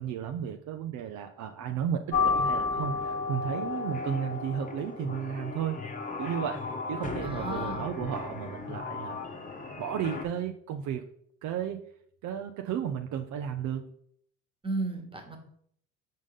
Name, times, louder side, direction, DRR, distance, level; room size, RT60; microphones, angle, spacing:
voice 1, 0.0-5.8 6.2-9.2 9.8-11.0 11.4-11.8 12.2-13.9, right 9 dB, 60° right, 5 dB, 0.6 m, -33 dB
sound 1, 2.1-10.2, left 4 dB, 25° left, 1.1 m, -33 dB
voice 2, 7.2-7.9 14.6-15.4, right 3 dB, 15° right, 4 dB, 1.5 m, -34 dB
5.2 x 3.7 x 5.3 m, 0.65 s
supercardioid pair, 65°, 34 cm